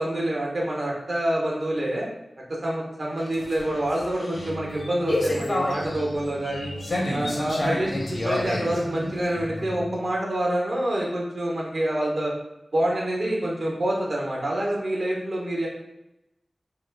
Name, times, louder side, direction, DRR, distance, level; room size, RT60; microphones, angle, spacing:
voice 1, 0.0-2.1 2.5-6.7 7.1-12.3 12.7-15.7, right 1 dB, 70° right, -3 dB, 0.8 m, -27 dB
sound 1, 3.1-10.0, left 1 dB, 65° left, 0.6 m, -30 dB
2.7 x 2.3 x 3.3 m, 0.88 s
wide cardioid pair, 75°, 0 cm